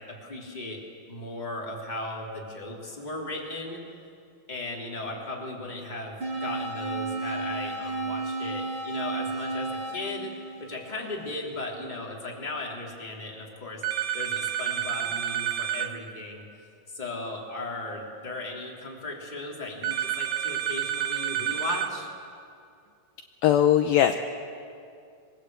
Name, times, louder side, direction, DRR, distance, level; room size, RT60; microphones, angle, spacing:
voice 1, 0.0-3.8 4.5-10.3 10.6-13.8 14.1-16.4 16.9-22.1, left 2 dB, 10° left, -2 dB, 3.1 m, -36 dB
sound 1, 6.2-11.2, right 2 dB, 25° right, 6.9 m, -33 dB
sound 2, 13.8-15.9 19.8-21.9, right 11 dB, 65° right, 2.8 m, -29 dB
voice 2, 23.4-24.1, left 10 dB, 80° left, 6 dB, 2.2 m, -19 dB
27.0 x 22.0 x 8.2 m, 2.4 s
omnidirectional pair, 4.9 m